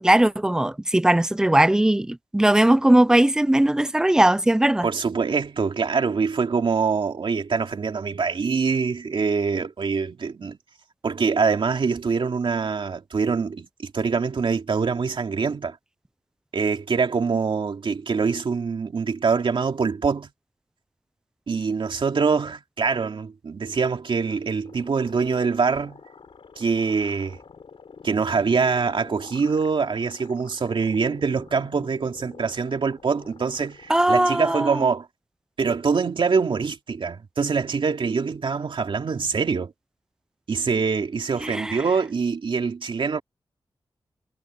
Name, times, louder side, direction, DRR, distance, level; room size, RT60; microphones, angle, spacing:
voice 1, 0.0-4.9 33.9-34.9 41.4-41.8, right 1 dB, 5° right, 0.3 m, -19 dB
voice 2, 4.8-10.6 11.0-15.8 16.5-20.3 21.5-26.0 26.6-27.4 28.0-35.1 35.6-39.7 40.5-43.2, right 5 dB, 65° right, 2.6 m, -24 dB
sound 1, 24.6-34.2, left 5 dB, 75° left, 3.8 m, -48 dB
wide cardioid pair, 140°, 9 cm